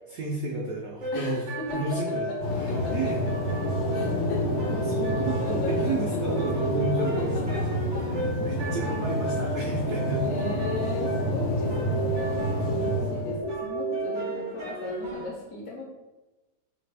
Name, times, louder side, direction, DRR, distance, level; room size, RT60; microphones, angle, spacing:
voice 1, 0.1-1.5 1.7-3.2 3.9-4.3 4.7-7.6 8.1-10.2, right 2 dB, 75° right, -2 dB, 0.8 m, -32 dB
sound 1, 1.0-15.3, right 1 dB, 50° right, 0.5 m, -32 dB
voice 2, 1.1-1.8 2.5-3.1 3.9-4.4 5.4-6.2 7.0-7.6 7.9-8.0 10.2-12.4 12.7-15.9, left 3 dB, 65° left, -3 dB, 0.9 m, -37 dB
sound 2, 2.4-13.4, equal, 90° left, 1.3 m, -29 dB
3.2 x 2.5 x 3.2 m, 1.1 s
omnidirectional pair, 2.0 m